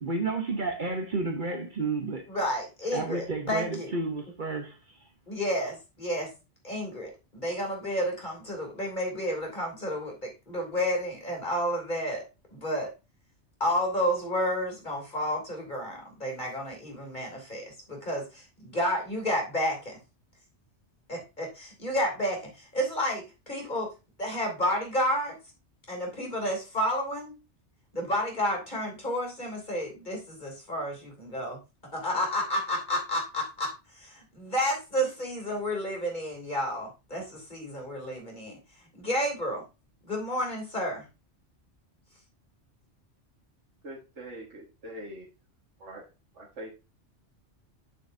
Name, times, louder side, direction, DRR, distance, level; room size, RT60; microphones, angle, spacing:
voice 1, 0.0-2.3 2.9-5.1, right 3 dB, 45° right, 1.0 m, -31 dB
voice 2, 2.3-3.9 5.3-6.3 6.6-12.2 12.5-12.9 13.6-20.0 21.1-23.9 24.2-25.4 25.9-27.3 27.9-31.6 31.9-39.6 40.0-41.1, equal, 40° left, 3.1 m, -31 dB
voice 3, 43.8-45.3 45.8-46.1 46.3-46.7, right 1 dB, 85° right, 1.9 m, -43 dB
9.2 x 6.5 x 2.7 m
omnidirectional pair, 1.2 m